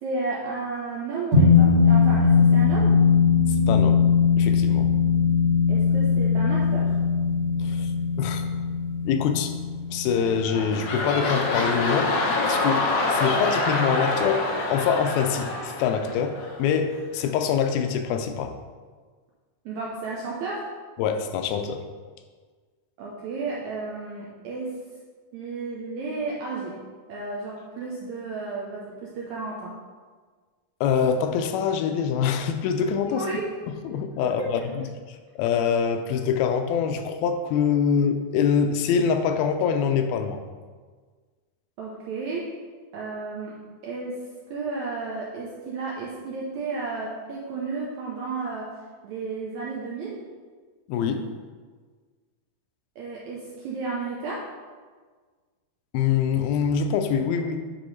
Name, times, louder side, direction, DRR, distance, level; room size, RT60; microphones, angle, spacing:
voice 1, 0.0-2.9 5.7-6.9 19.7-20.7 23.0-24.7 25.3-26.8 27.1-29.7 33.0-33.5 34.2-34.5 41.8-42.5 42.9-43.5 43.8-44.2 44.5-48.7 49.0-50.2 53.0-54.4, right 3 dB, 75° right, -4 dB, 1.7 m, -32 dB
sound 1, 1.3-12.0, left 5 dB, 35° right, 2.1 m, -20 dB
voice 2, 3.7-4.0 4.4-4.9 7.6-7.9 8.2-8.5 9.1-9.5 9.9-12.1 12.5-18.5 21.0-21.8 30.8-33.2 33.8-34.8 35.4-40.4 50.9-51.3 55.9-57.6, left 7 dB, 90° left, 7 dB, 2.4 m, -24 dB
sound 2, 10.1-16.7 17.2-17.3, left 2 dB, 70° left, 1.7 m, -26 dB
9.8 x 3.6 x 4.1 m, 1.5 s
omnidirectional pair, 4.3 m